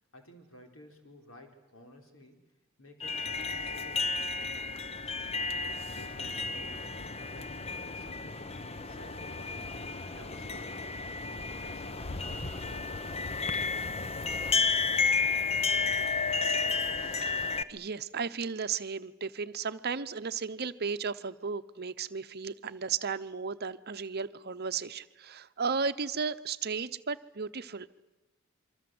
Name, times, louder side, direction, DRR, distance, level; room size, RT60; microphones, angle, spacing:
voice 1, 0.1-2.4 2.8-5.0 5.9-6.9 7.3-10.9 11.4-16.3, left 1 dB, 70° left, 3 dB, 4.5 m, -54 dB
sound 1, 3.0-17.6, left 4 dB, 30° left, 0.9 m, -32 dB
voice 2, 17.2-27.9, right 5 dB, 50° right, 11 dB, 0.9 m, -35 dB
26.5 x 24.5 x 7.9 m, 1.1 s
head